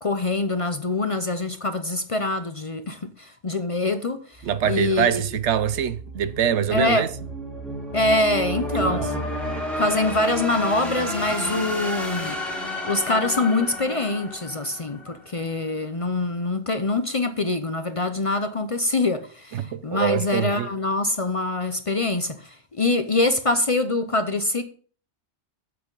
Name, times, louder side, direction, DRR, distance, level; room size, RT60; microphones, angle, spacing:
voice 1, 0.0-5.2 6.7-7.1 7.9-9.2 9.8-12.4 12.8-24.6, left 2 dB, 35° left, 0.6 m, -24 dB
sound 1, 4.4-15.4, equal, ahead, 2.4 m, -32 dB
voice 2, 4.4-7.1 8.7-9.1 19.5-20.7, right 9 dB, 80° right, 1.0 m, -24 dB
9.1 x 7.7 x 3.9 m
omnidirectional pair, 1.2 m